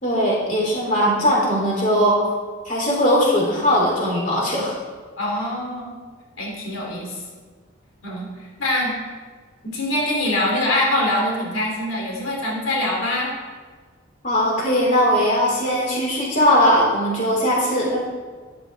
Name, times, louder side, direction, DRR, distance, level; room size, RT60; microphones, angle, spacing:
voice 1, 0.0-2.2 2.6-4.8 14.2-18.1, equal, 40° left, -4 dB, 3.3 m, -19 dB
voice 2, 5.2-6.0 6.4-7.2 8.0-9.0 9.6-13.3, left 1 dB, 85° left, -2 dB, 3.1 m, -24 dB
13.5 x 11.5 x 3.5 m, 1.5 s
head